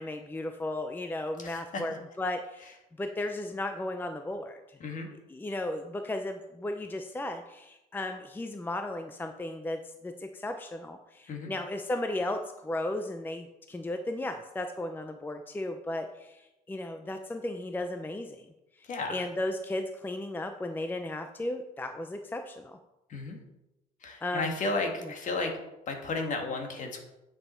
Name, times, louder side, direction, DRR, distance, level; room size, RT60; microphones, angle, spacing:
voice 1, 0.0-4.8 5.3-18.5 18.8-22.8 24.2-24.5, left 1 dB, 10° left, 6 dB, 0.5 m, -35 dB
voice 2, 1.4-1.9 4.8-5.1 11.3-11.5 18.8-19.2 23.1-23.4 24.0-25.5 25.9-27.0, left 3 dB, 50° left, 4 dB, 1.7 m, -33 dB
9.4 x 5.6 x 4.4 m, 0.94 s
cardioid pair, 110°, 17 cm